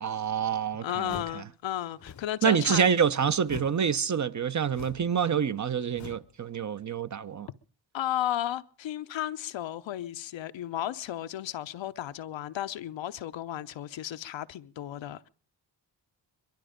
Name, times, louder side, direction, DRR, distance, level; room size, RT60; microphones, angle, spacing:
voice 1, 0.0-1.4 2.4-7.5, right 7 dB, 40° right, 0.7 m, -27 dB
voice 2, 0.8-2.9 7.9-15.3, left 12 dB, 80° left, 0.8 m, -34 dB
sound 1, 1.0-1.5 1.9-2.4 3.4-3.9 4.7-5.2 5.9-6.4, left 7 dB, 40° left, 0.7 m, -44 dB
22.5 x 12.0 x 5.1 m
cardioid pair, 65°, 45 cm